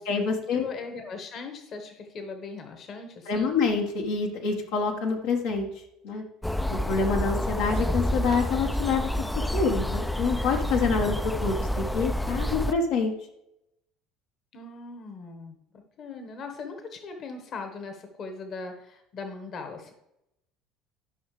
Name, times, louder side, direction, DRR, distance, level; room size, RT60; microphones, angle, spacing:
voice 1, 0.0-0.6 3.3-5.7 6.0-6.2 6.7-9.2 9.5-13.1, left 4 dB, 75° left, 0 dB, 1.4 m, -27 dB
voice 2, 0.5-3.6 14.5-15.6 16.0-19.9, left 4 dB, 50° left, 6 dB, 1.4 m, -39 dB
sound 1, 6.4-12.7, equal, 5° left, 0.4 m, -28 dB
12.5 x 5.7 x 3.3 m, 0.86 s
hypercardioid pair, 70°, 0 cm